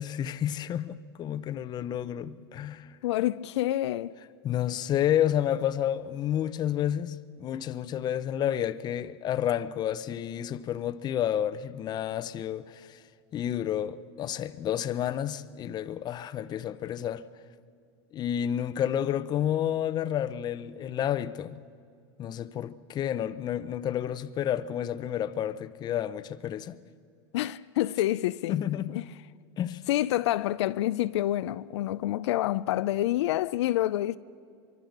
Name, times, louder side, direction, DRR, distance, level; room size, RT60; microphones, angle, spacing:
voice 1, 0.0-2.9 4.4-13.0 13.3-17.3 18.1-21.6 22.2-26.8 28.5-29.0 29.6-29.8, left 10 dB, 30° left, 0.7 m, -30 dB
voice 2, 3.0-4.1 27.3-28.6 28.9-29.0 29.9-34.2, left 14 dB, 75° left, 0.5 m, -27 dB
24.0 x 24.0 x 6.6 m
supercardioid pair, 130°, 14 cm